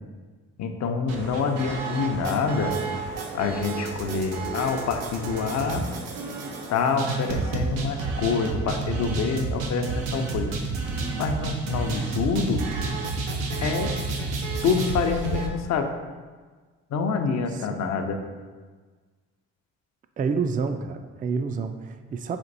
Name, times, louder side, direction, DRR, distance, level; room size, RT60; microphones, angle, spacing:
voice 1, 0.6-2.8 3.3-5.8 6.7-10.5 11.2-12.6 13.6-13.9 14.6-15.9 16.9-18.2, left 5 dB, 55° left, 6 dB, 0.6 m, -26 dB
sound 1, 1.1-15.5, right 3 dB, 85° right, 0.6 m, -31 dB
voice 2, 17.5-17.9 20.2-22.4, right 5 dB, 25° right, 7 dB, 0.3 m, -29 dB
4.4 x 2.5 x 3.9 m, 1.4 s
supercardioid pair, 50°, 33 cm